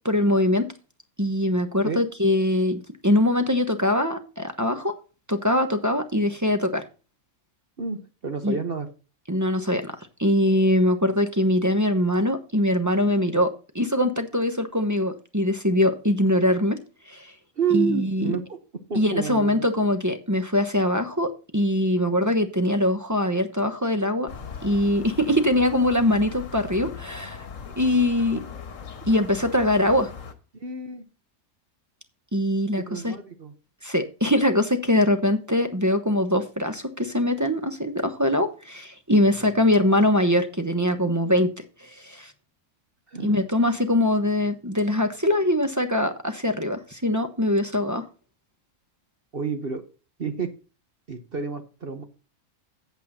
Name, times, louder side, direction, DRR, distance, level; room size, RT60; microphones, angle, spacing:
voice 1, 0.0-0.7 1.2-5.0 5.3-6.8 8.4-8.6 9.3-9.9 10.2-16.8 17.1-17.3 17.7-18.3 18.9-24.3 24.6-27.4 27.8-28.4 29.1-30.1 32.3-33.1 33.8-41.5 42.0-42.3 43.2-48.0, left 1 dB, 15° right, 8 dB, 0.9 m, -22 dB
voice 2, 7.8-8.9 17.6-18.6 18.9-19.6 30.5-31.0 32.8-33.5 39.2-39.5 43.1-43.4 49.3-49.8 50.2-50.5 51.1-52.0, right 5 dB, 45° right, 7 dB, 1.2 m, -29 dB
sound 1, 24.3-30.3, left 6 dB, 65° left, 1.5 m, -39 dB
8.4 x 8.1 x 4.2 m, 0.33 s
omnidirectional pair, 1.5 m